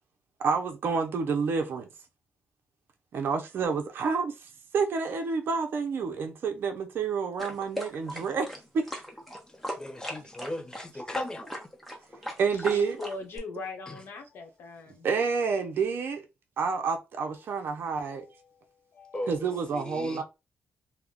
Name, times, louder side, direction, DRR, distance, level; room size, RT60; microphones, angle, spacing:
voice 1, 0.4-1.9 3.1-4.4 4.7-8.5 8.7-8.9 12.4-13.0 15.0-16.2 16.6-18.3 19.3-20.2, right 5 dB, 65° right, 0.5 m, -29 dB
sound 1, 7.4-13.4, equal, 5° left, 0.8 m, -38 dB
voice 2, 9.8-11.5 13.9-14.0 19.1-19.3 19.7-20.2, left 1 dB, 20° left, 0.5 m, -36 dB
voice 3, 12.3-15.1 17.4-17.5 18.1-19.2, left 3 dB, 75° left, 0.8 m, -42 dB
2.3 x 2.0 x 3.4 m
cardioid pair, 90°, 4 cm